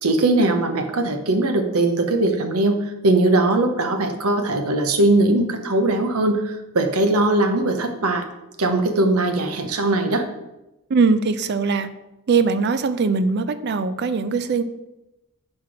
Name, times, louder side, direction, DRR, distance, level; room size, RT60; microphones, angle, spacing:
voice 1, 0.0-8.2 8.6-10.2, right 2 dB, 85° right, 6 dB, 0.8 m, -20 dB
voice 2, 10.9-11.9 12.3-14.6, right 4 dB, 50° right, 12 dB, 0.4 m, -21 dB
4.8 x 4.4 x 5.9 m, 0.96 s
head